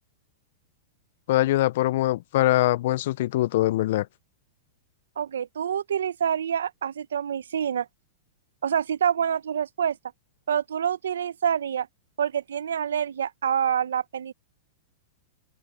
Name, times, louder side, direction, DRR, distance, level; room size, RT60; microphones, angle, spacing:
voice 1, 1.3-4.1, left 15 dB, 60° left, 0.4 m, -23 dB
voice 2, 5.2-7.9 8.6-10.0 10.5-11.9 12.2-14.3, right 8 dB, 80° right, 0.9 m, -27 dB
open air
hypercardioid pair, 110°, 0 cm